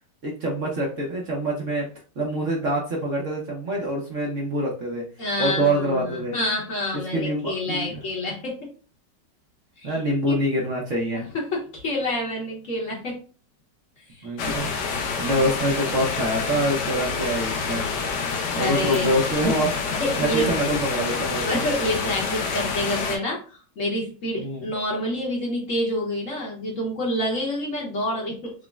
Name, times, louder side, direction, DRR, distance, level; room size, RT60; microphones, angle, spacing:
voice 1, 0.2-1.9 2.2-5.0 5.4-6.4 7.1-8.0 9.8-11.2 14.2-14.7 15.2-17.8 18.6-19.7 20.2-21.6 24.4-24.7, right 1 dB, 55° right, -2 dB, 1.0 m, -25 dB
voice 2, 5.2-8.7 9.8-10.0 10.3-10.4 11.3-13.2 14.1-14.3 18.5-19.2 19.9-20.5 21.4-28.5, left 1 dB, 50° left, -2 dB, 1.2 m, -28 dB
sound 1, 14.4-23.2, left 5 dB, 75° left, 1.2 m, -27 dB
6.0 x 2.1 x 2.3 m, 0.38 s
omnidirectional pair, 1.9 m